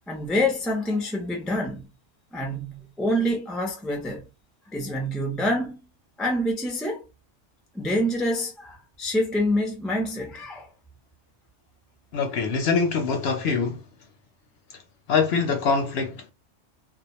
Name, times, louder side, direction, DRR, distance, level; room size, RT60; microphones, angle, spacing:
voice 1, 0.1-1.9 2.3-4.2 4.7-5.8 6.2-7.0 7.7-10.6, left 1 dB, ahead, 0.3 m, -26 dB
voice 2, 12.1-13.8 15.1-16.3, left 5 dB, 60° left, 0.8 m, -24 dB
2.3 x 2.2 x 3.0 m
omnidirectional pair, 1.3 m